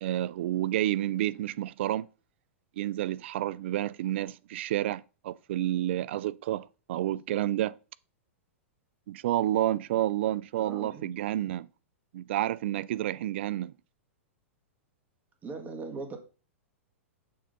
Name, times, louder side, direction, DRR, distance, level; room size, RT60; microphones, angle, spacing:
voice 1, 0.0-2.1 2.8-7.8 9.1-11.7 12.1-13.7, right 13 dB, 60° right, 0.3 m, -30 dB
voice 2, 10.6-11.1 15.4-16.2, right 4 dB, 25° right, 1.7 m, -39 dB
6.9 x 3.6 x 5.3 m
hypercardioid pair, 105°, 7 cm